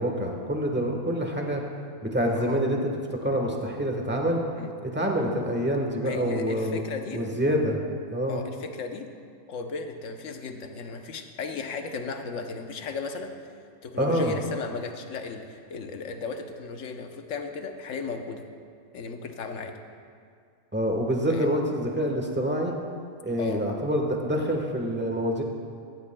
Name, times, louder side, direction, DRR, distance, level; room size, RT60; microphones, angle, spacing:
voice 1, 0.0-1.6 2.0-2.8 3.1-4.4 4.8-6.8 7.1-7.8 8.1-8.4 14.0-14.3 20.7-22.8 23.2-25.4, equal, 10° right, 1 dB, 1.1 m, -26 dB
voice 2, 2.3-2.6 4.6-4.7 6.0-7.2 8.3-9.1 9.5-13.5 13.8-18.4 18.9-19.7 21.3-21.5 23.4-23.6, left 4 dB, 65° left, 5 dB, 1.2 m, -35 dB
16.5 x 14.5 x 2.2 m, 2.3 s
omnidirectional pair, 1.5 m